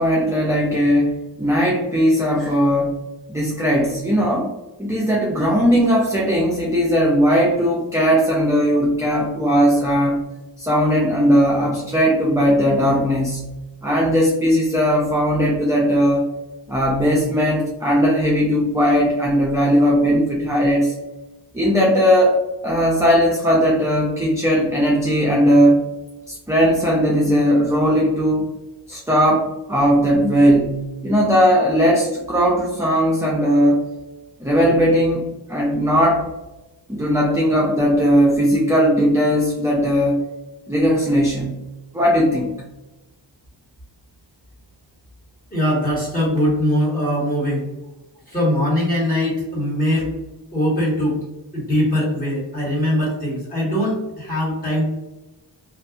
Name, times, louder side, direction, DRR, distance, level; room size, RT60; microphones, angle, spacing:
voice 1, 0.0-2.9 3.3-4.5 4.8-10.2 10.6-13.5 13.8-16.3 16.7-20.9 21.5-25.8 26.3-28.5 28.9-33.8 34.4-36.3 36.9-40.2 40.7-41.5 41.9-42.5, equal, 5° right, -4 dB, 0.4 m, -18 dB
voice 2, 45.5-47.7 48.3-50.1 50.5-51.2 51.5-54.9, equal, 20° left, -6 dB, 1.5 m, -21 dB
2.6 x 2.4 x 2.3 m, 1.0 s
wide cardioid pair, 85°, 44 cm